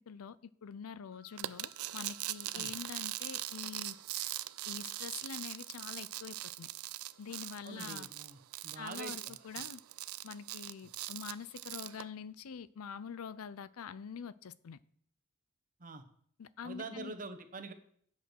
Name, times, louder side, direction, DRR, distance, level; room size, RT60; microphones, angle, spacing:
voice 1, 0.1-4.3 4.7-6.7 7.2-8.1 8.8-9.8 10.2-14.8 16.4-17.1, left 6 dB, 80° left, 0.5 m, -45 dB
sound 1, 1.1-10.4, left 3 dB, 50° left, 1.8 m, -70 dB
sound 2, 1.4-12.0, right 16 dB, 85° right, 0.4 m, -41 dB
voice 2, 7.6-9.5 15.8-16.0 16.6-17.7, right 3 dB, 40° right, 1.1 m, -45 dB
8.8 x 8.1 x 6.2 m
head